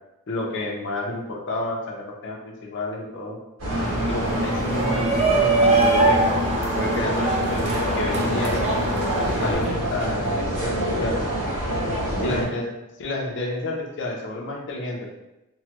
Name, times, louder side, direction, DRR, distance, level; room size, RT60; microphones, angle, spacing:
voice 1, 0.3-3.4 4.1-6.2 6.7-8.7 9.4-10.7 11.0-11.5 12.2-12.7 13.0-15.0, left 2 dB, 55° left, -1 dB, 0.5 m, -30 dB
sound 1, 3.6-12.4, equal, 80° right, 1.2 m, -27 dB
Engine, 3.7-9.5, equal, 55° right, 0.8 m, -28 dB
Shout, 4.6-9.7, right 3 dB, 30° right, 0.3 m, -23 dB
3.1 x 2.1 x 2.9 m, 0.96 s
head